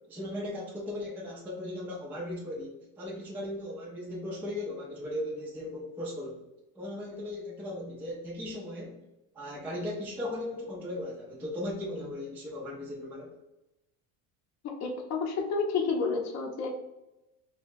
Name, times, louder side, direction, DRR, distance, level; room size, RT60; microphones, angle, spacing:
voice 1, 0.0-6.4 6.8-9.0 9.3-13.3, left 1 dB, 5° right, -5 dB, 0.4 m, -37 dB
voice 2, 14.6-16.7, left 4 dB, 40° left, 0 dB, 0.7 m, -30 dB
2.9 x 2.2 x 4.1 m, 0.95 s
cardioid pair, 145°, 43 cm